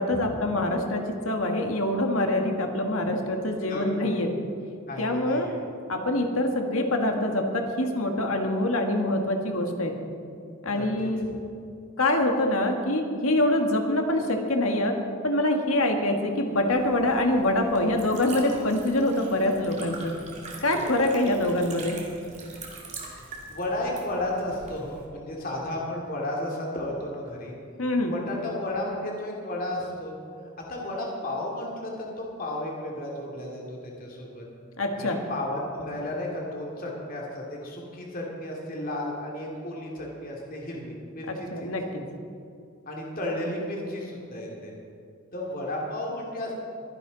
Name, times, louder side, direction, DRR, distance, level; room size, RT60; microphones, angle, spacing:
voice 1, 0.0-4.3 5.0-5.5 5.9-10.0 10.6-11.3 12.0-15.0 15.2-20.1 20.6-22.0 27.8-28.1 34.8-35.2 41.3-42.0, left 1 dB, 75° left, 3 dB, 1.7 m, -25 dB
voice 2, 3.6-4.1 4.9-5.6 10.7-11.3 20.7-20.9 23.5-27.5 28.1-30.1 30.7-34.4 35.0-41.7 42.9-44.7 45.3-46.5, left 1 dB, 40° left, -2 dB, 2.4 m, -33 dB
Liquid, 16.5-25.1, right 3 dB, 30° right, 2.3 m, -44 dB
22.5 x 10.5 x 4.0 m, 2.4 s
head